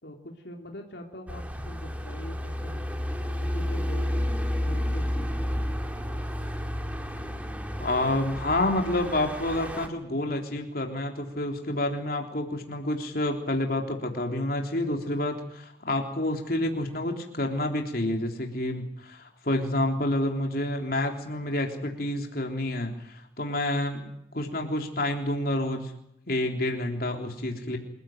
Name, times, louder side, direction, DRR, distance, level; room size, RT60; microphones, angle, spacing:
voice 1, 0.0-4.2 4.6-5.3 5.5-5.6, left 1 dB, 70° left, 2 dB, 3.2 m, -44 dB
sound 1, 1.3-9.9, equal, 10° right, 2.4 m, -31 dB
voice 2, 7.8-24.0 24.3-25.9 26.3-27.8, left 1 dB, 55° left, 3 dB, 3.6 m, -29 dB
28.0 x 15.5 x 9.2 m, 0.76 s
head